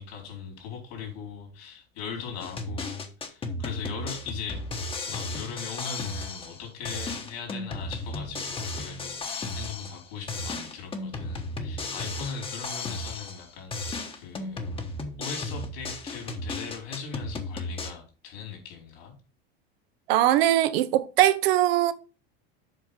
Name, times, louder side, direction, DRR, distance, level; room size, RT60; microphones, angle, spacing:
voice 1, 0.0-4.7 5.1-14.6 15.2-19.1, left 6 dB, 75° left, 4.3 m, -39 dB
sound 1, 2.4-6.6 6.9-10.0 10.3-13.5 13.7-17.9, left 2 dB, 15° left, 1.1 m, -34 dB
voice 2, 20.1-21.9, right 13 dB, 75° right, 0.9 m, -21 dB
7.7 x 5.0 x 5.2 m
supercardioid pair, 135°, 31 cm